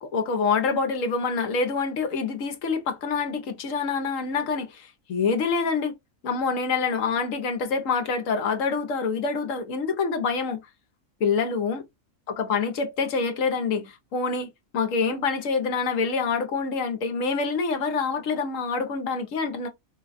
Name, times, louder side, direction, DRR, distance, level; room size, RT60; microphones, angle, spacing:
voice 1, 0.0-5.9 6.2-10.6 11.2-11.8 12.3-19.7, left 5 dB, 65° left, 1.2 m, -26 dB
4.7 x 2.3 x 2.4 m
omnidirectional pair, 1.5 m